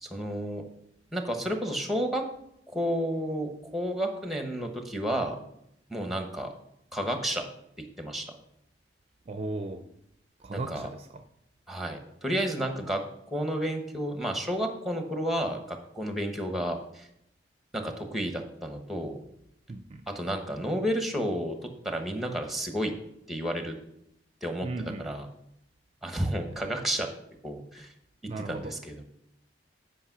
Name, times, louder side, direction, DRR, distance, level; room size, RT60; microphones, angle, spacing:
voice 1, 0.0-0.6 1.1-2.2 2.7-5.4 5.9-6.5 6.9-7.5 8.0-8.3 10.5-10.9 11.7-13.0 13.3-17.1 17.7-19.2 20.1-21.6 21.8-22.9 23.3-23.8 24.4-25.3 26.0-27.1 27.4-27.9 28.4-29.0, equal, ahead, 5 dB, 1.1 m, -31 dB
voice 2, 9.3-9.9 10.4-11.2 19.7-20.1 24.6-25.1 28.3-28.8, right 2 dB, 35° right, 7 dB, 0.5 m, -36 dB
8.6 x 5.2 x 5.9 m, 0.78 s
head